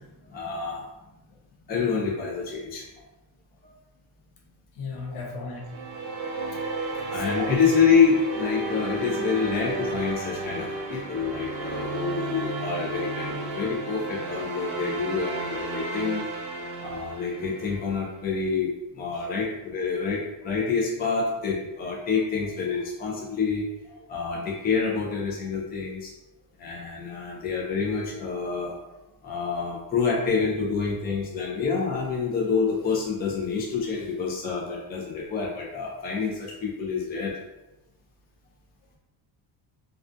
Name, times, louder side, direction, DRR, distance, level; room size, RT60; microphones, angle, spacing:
voice 1, 0.3-0.8 1.7-2.8 3.6-3.7 7.1-16.3 16.8-18.7 19.0-23.6 24.1-26.1 26.6-28.7 29.2-37.3, left 5 dB, 20° left, -3 dB, 0.4 m, -27 dB
voice 2, 4.8-5.8 6.4-6.6 7.1-7.5, left 3 dB, 85° left, 0 dB, 0.7 m, -36 dB
sound 1, 5.6-18.0, right 3 dB, 70° right, 0.6 m, -33 dB
2.4 x 2.3 x 2.4 m, 0.98 s
cardioid pair, 145°, 49 cm